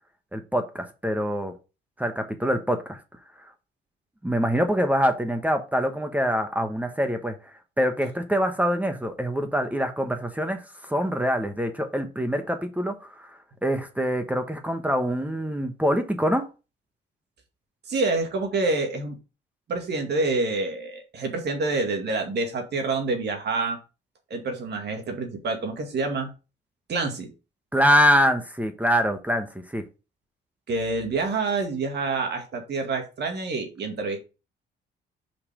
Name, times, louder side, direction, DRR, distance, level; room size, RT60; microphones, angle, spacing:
voice 1, 0.3-1.5 2.0-3.0 3.4-3.5 4.2-7.3 7.8-13.3 13.6-16.4 27.7-29.8, equal, 5° right, 7 dB, 1.1 m, -24 dB
voice 2, 17.9-19.2 19.7-23.8 24.3-26.3 26.9-27.3 30.7-34.2, right 3 dB, 60° right, 4 dB, 2.1 m, -27 dB
5.2 x 5.2 x 5.0 m, 0.31 s
cardioid pair, 90°, 20 cm